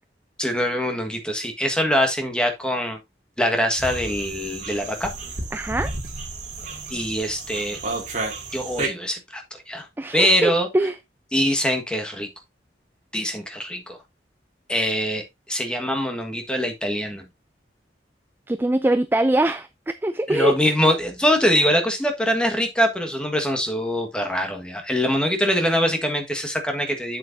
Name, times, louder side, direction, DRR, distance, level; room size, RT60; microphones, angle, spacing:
voice 1, 0.4-3.0 3.4-5.1 6.9-7.8 8.5-9.9 10.1-10.7 11.3-12.3 13.1-14.0 14.7-17.3 20.3-27.2, equal, 5° left, 1.5 m, -23 dB
sound 1, 3.8-8.9, right 3 dB, 45° right, 2.2 m, -32 dB
voice 2, 5.5-5.9 10.0-10.9 18.5-19.7 20.0-20.5, right 1 dB, 10° right, 0.3 m, -22 dB
7.7 x 7.7 x 2.6 m
head